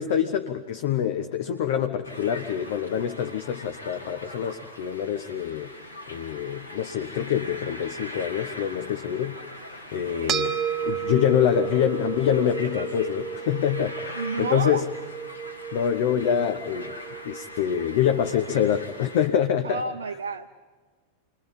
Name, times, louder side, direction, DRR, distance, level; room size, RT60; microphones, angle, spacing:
voice 1, 0.0-5.7 6.1-9.4 9.7-14.9 15.7-17.0 17.2-19.8, left 9 dB, 55° left, 7 dB, 0.9 m, -26 dB
sound 1, 2.0-19.3, left 1 dB, 85° left, 2.8 m, -42 dB
voice 2, 10.1-10.4 14.1-14.8 19.6-20.5, right 4 dB, 75° right, 5 dB, 0.6 m, -30 dB
sound 2, 10.3-18.9, right 9 dB, 30° right, 1.1 m, -33 dB
28.0 x 22.5 x 5.4 m, 1.4 s
figure-of-eight pair, 90°, 0 cm